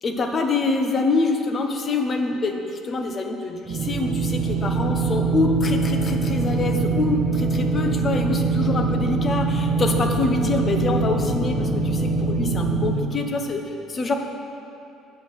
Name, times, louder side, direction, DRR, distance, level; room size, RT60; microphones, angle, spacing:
voice 1, 0.0-14.2, left 3 dB, 40° left, 5 dB, 0.9 m, -25 dB
sound 1, 3.7-13.0, right 4 dB, 50° right, 0.7 m, -23 dB
8.6 x 5.2 x 6.9 m, 2.7 s
supercardioid pair, 75°, 0 cm